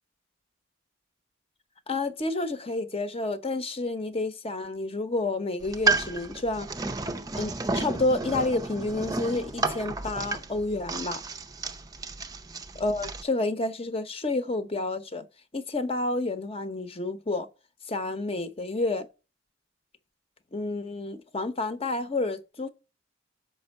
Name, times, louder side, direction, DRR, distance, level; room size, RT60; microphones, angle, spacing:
voice 1, 1.9-6.7 7.4-11.2 12.7-15.2 15.5-17.5 17.9-19.1 20.5-22.7, left 2 dB, 30° left, 0.9 m, -30 dB
sound 1, 5.6-13.2, right 3 dB, 20° right, 0.5 m, -31 dB
6.6 x 5.3 x 6.4 m
head